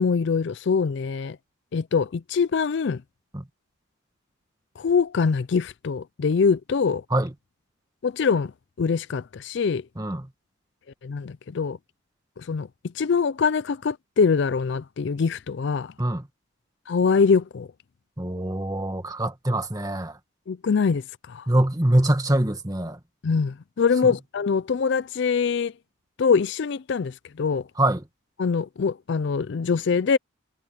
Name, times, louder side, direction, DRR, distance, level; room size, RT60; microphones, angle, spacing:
voice 1, 0.0-1.4 1.7-3.0 4.8-7.0 8.0-8.5 8.8-9.9 11.0-11.8 12.4-12.7 12.9-15.9 16.9-17.7 20.5-21.5 23.2-25.7 26.2-27.7 28.4-30.2, left 5 dB, 55° left, 0.4 m, -23 dB
voice 2, 10.0-10.3 16.0-16.3 18.2-20.2 21.5-23.0 24.0-24.2 27.8-28.0, right 1 dB, 15° right, 1.7 m, -24 dB
head